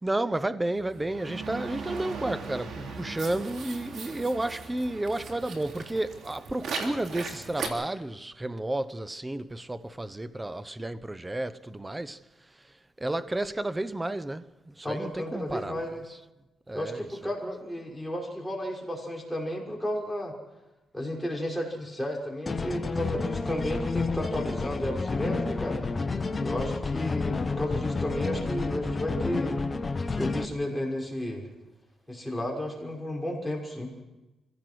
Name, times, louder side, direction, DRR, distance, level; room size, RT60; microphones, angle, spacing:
voice 1, 0.0-12.2 13.0-15.8 16.7-17.1, right 1 dB, 15° right, 0.9 m, -32 dB
sound 1, 0.8-7.7, right 4 dB, 70° right, 3.5 m, -38 dB
voice 2, 14.8-16.0 16.7-20.3 20.9-25.8 26.4-29.6 30.1-31.5 32.1-33.9, left 1 dB, 5° left, 6.1 m, -33 dB
sound 2, 22.5-30.5, left 3 dB, 30° left, 1.2 m, -30 dB
25.5 x 16.5 x 6.2 m
cardioid pair, 100°, 0 cm